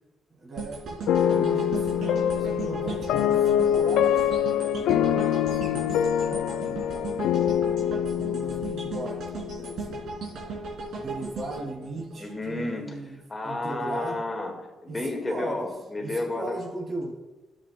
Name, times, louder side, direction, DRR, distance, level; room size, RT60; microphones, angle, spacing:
voice 1, 0.3-0.8 1.2-4.3 4.8-7.1 8.2-10.0 10.9-13.2 13.4-14.2 14.9-15.7 16.0-17.2, right 2 dB, 45° right, -1 dB, 2.9 m, -38 dB
sound 1, 0.6-12.7 13.2-13.3, right 4 dB, 75° right, 3.1 m, -37 dB
sound 2, 1.1-10.2, left 9 dB, 85° left, 0.3 m, -25 dB
voice 2, 12.2-16.6, left 2 dB, 20° left, 1 dB, 2.0 m, -32 dB
13.0 x 7.8 x 2.3 m, 1.1 s
cardioid pair, 90°, 0 cm